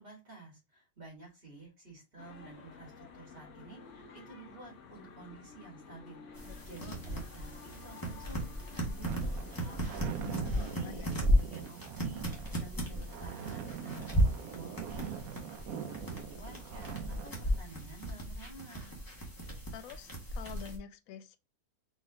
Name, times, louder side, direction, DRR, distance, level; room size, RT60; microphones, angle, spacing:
voice 1, 0.0-12.2 12.5-15.1 15.3-19.0, right 4 dB, 40° right, 2.2 m, -51 dB
sound 1, 2.2-9.8, left 5 dB, 55° left, 1.4 m, -52 dB
sound 2, 6.3-20.8, equal, 15° left, 1.3 m, -35 dB
voice 2, 6.4-7.0 10.2-11.1 19.7-21.4, left 8 dB, 70° left, 1.0 m, -47 dB
sound 3, 9.0-17.6, right 8 dB, 80° right, 1.1 m, -43 dB
4.2 x 3.3 x 3.5 m
omnidirectional pair, 1.5 m